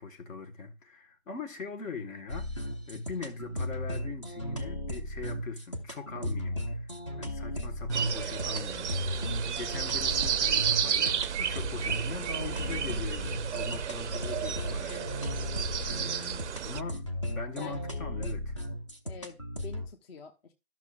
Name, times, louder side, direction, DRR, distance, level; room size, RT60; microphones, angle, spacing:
voice 1, 0.0-15.6 15.9-18.6, left 4 dB, 55° left, 1.5 m, -41 dB
sound 1, 2.3-19.9, equal, 20° left, 0.5 m, -36 dB
sound 2, 7.9-16.8, right 8 dB, 50° right, 0.5 m, -32 dB
voice 2, 19.0-20.5, left 4 dB, 40° left, 1.0 m, -47 dB
13.0 x 6.0 x 2.4 m
hypercardioid pair, 155°, 46 cm